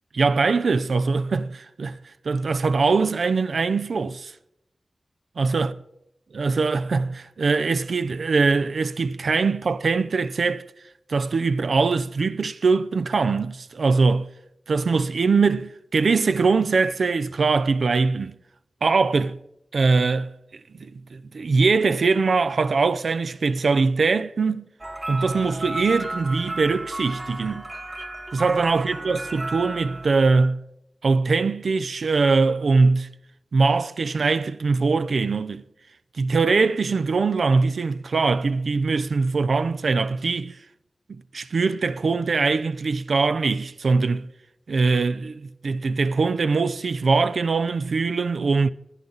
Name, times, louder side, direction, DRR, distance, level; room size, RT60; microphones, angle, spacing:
voice 1, 0.1-2.0 2.2-4.3 5.4-5.7 6.3-10.6 11.1-14.3 14.7-18.4 18.8-19.4 19.7-20.3 20.7-24.7 25.1-27.7 28.3-30.6 31.0-33.1 33.5-35.6 36.2-40.6 41.1-44.3 44.7-48.7, right 4 dB, 80° right, 0.5 m, -22 dB
sound 1, 24.8-30.1, right 2 dB, 30° right, 1.3 m, -33 dB
19.5 x 11.5 x 4.0 m
wide cardioid pair, 60°, 0 cm